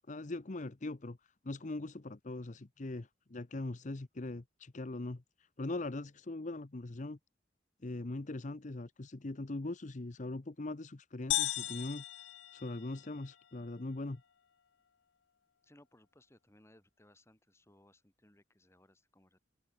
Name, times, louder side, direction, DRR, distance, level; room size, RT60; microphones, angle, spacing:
voice 1, 0.1-7.2 7.8-12.3 12.5-14.2, left 2 dB, 45° left, 0.8 m, -41 dB
sound 1, 11.3-13.3, left 15 dB, 90° left, 0.6 m, -36 dB
voice 2, 15.6-19.4, left 1 dB, 15° left, 2.9 m, -64 dB
open air
head